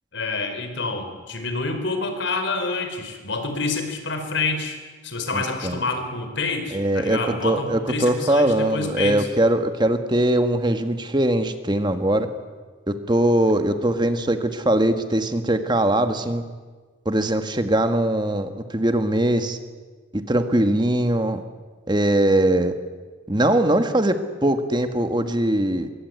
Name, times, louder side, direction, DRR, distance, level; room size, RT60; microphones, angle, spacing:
voice 1, 0.1-9.3, left 3 dB, 70° left, 7 dB, 4.6 m, -28 dB
voice 2, 5.3-5.8 6.7-12.3 12.9-16.4 17.0-19.6 20.1-21.4 21.9-22.7 23.3-25.9, right 1 dB, 25° right, 8 dB, 1.5 m, -21 dB
25.0 x 23.0 x 9.5 m, 1.4 s
head